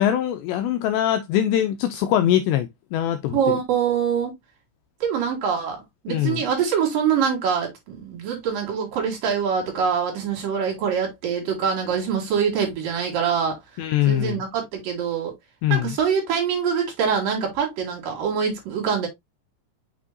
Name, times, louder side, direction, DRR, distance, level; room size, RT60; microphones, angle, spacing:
voice 1, 0.0-3.6 6.1-6.4 13.8-14.4 15.6-16.0, left 11 dB, 90° left, 2.5 m, -22 dB
voice 2, 3.3-4.3 5.0-13.6 14.1-15.3 15.7-19.1, right 7 dB, 55° right, 3.3 m, -24 dB
6.5 x 6.1 x 2.5 m
omnidirectional pair, 5.6 m